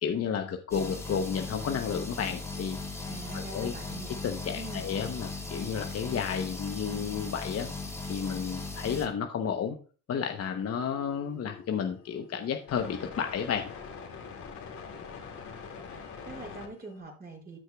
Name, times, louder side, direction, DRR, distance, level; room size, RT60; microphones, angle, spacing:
voice 1, 0.0-2.8 3.3-3.7 4.2-7.7 8.1-9.8 10.1-13.7, left 7 dB, 55° left, 5 dB, 0.9 m, -32 dB
sound 1, 0.7-9.1, left 3 dB, 10° left, 2.3 m, -38 dB
voice 2, 3.0-4.1 4.5-4.9 15.9-17.6, right 2 dB, 30° right, -2 dB, 4.9 m, -43 dB
sound 2, 10.2-17.0, left 5 dB, 70° left, 2.3 m, -45 dB
14.0 x 6.3 x 2.3 m, 0.38 s
cardioid pair, 90°, 30 cm